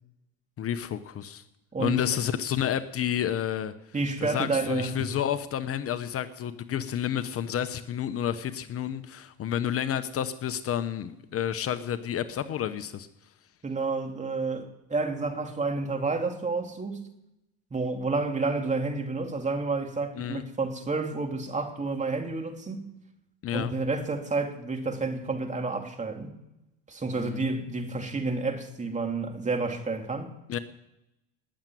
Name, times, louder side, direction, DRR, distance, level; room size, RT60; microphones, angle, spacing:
voice 1, 0.6-1.4 1.8-3.7 4.2-13.1 20.2-20.4 23.4-23.7 27.1-27.4 30.5-30.6, left 10 dB, 45° left, 1.0 m, -30 dB
voice 2, 1.7-2.1 3.9-5.1 13.6-17.1 17.7-22.9 23.5-26.3 26.9-30.3, right 3 dB, 20° right, 2.7 m, -30 dB
19.5 x 7.4 x 9.3 m
supercardioid pair, 95°, 32 cm